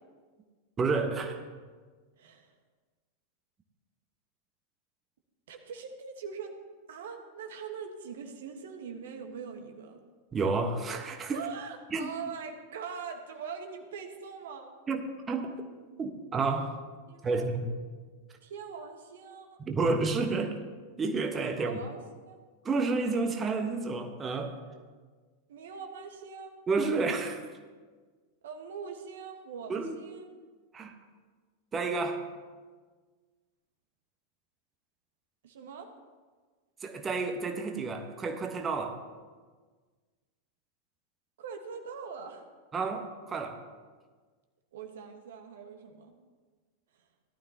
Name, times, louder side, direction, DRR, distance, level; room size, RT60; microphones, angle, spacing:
voice 1, 0.8-1.5 10.3-11.4 11.9-12.1 14.9-15.5 16.0-16.8 17.2-17.7 19.6-20.6 21.0-21.8 22.6-24.5 26.7-27.5 29.7-30.0 30.7-30.9 31.7-32.3 36.8-39.0 42.7-43.6, right 3 dB, 20° right, 4 dB, 1.2 m, -30 dB
voice 2, 2.2-2.5 5.5-6.5 6.9-10.0 11.3-14.7 17.1-17.5 18.4-19.6 21.5-22.4 25.5-26.5 28.4-30.3 35.4-35.9 41.4-42.4 44.7-46.1, right 6 dB, 60° right, 5 dB, 1.3 m, -42 dB
17.5 x 12.0 x 2.9 m, 1.4 s
figure-of-eight pair, 90°, 0 cm